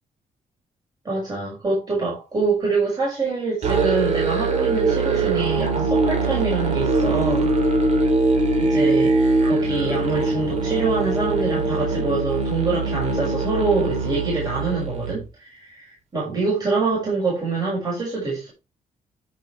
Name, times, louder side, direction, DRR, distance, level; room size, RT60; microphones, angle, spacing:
voice 1, 1.0-7.5 8.6-9.1 9.4-18.5, right 3 dB, 30° right, 6.4 m, -25 dB
Musical instrument, 3.6-15.2, right 3 dB, 55° right, 3.1 m, -22 dB
11.0 x 8.3 x 3.4 m
wide cardioid pair, 160°, 14 cm